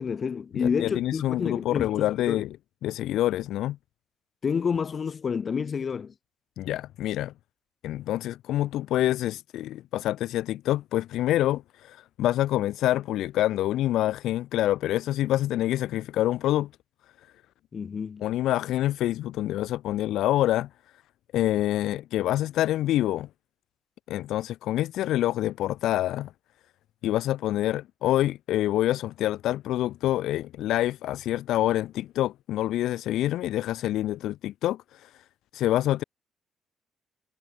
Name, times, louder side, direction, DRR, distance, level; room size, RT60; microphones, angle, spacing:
voice 1, 0.0-1.9 2.3-2.4 4.4-6.1 17.7-18.2, left 6 dB, 45° left, 1.7 m, -29 dB
voice 2, 0.5-2.6 2.8-3.8 6.6-7.3 7.8-16.7 18.2-20.7 21.3-23.3 24.1-26.3 27.0-35.1 35.5-36.0, left 14 dB, 85° left, 1.4 m, -26 dB
cardioid pair, 90°, 0 cm